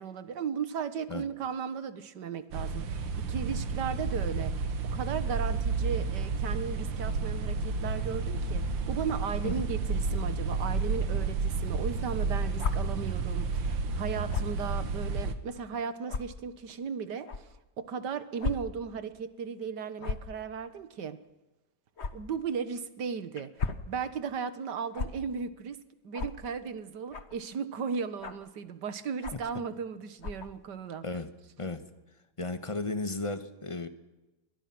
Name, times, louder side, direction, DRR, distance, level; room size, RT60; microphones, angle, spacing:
voice 1, 0.0-21.2 22.1-25.8 26.0-31.0, right 6 dB, 65° right, 12 dB, 1.9 m, -36 dB
sound 1, 2.5-15.3, right 4 dB, 90° right, 2.2 m, -31 dB
sound 2, 12.6-12.7 14.3-14.5 15.3-15.4 16.1-16.2 17.3-17.4 18.4-18.5 18.9-19.0 20.0-20.3 22.0-22.1 23.4-23.8 24.9-25.1 26.1-26.3 27.1-27.4 28.2-28.5 29.2-29.5 30.2-30.5, left 4 dB, 40° left, 1.5 m, -33 dB
voice 2, 32.4-33.9, left 2 dB, 20° left, 9 dB, 1.4 m, -34 dB
28.5 x 22.5 x 6.2 m, 1.1 s
omnidirectional pair, 2.0 m